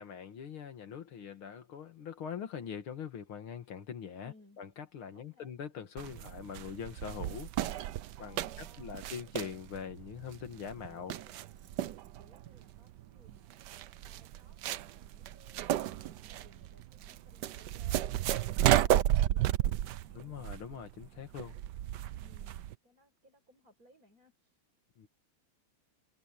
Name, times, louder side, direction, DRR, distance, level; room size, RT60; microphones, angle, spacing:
voice 1, 0.0-7.5 8.2-11.2 20.1-21.6 25.0-25.1, left 7 dB, 80° left, 2.6 m, -43 dB
voice 2, 4.2-4.6 5.1-5.5 8.2-9.4 10.8-11.9 12.2-13.7 14.0-20.5 22.2-24.6, equal, 40° right, 8.4 m, -63 dB
sound 1, 6.0-22.7, right 13 dB, 65° right, 1.1 m, -33 dB
omnidirectional pair, 2.3 m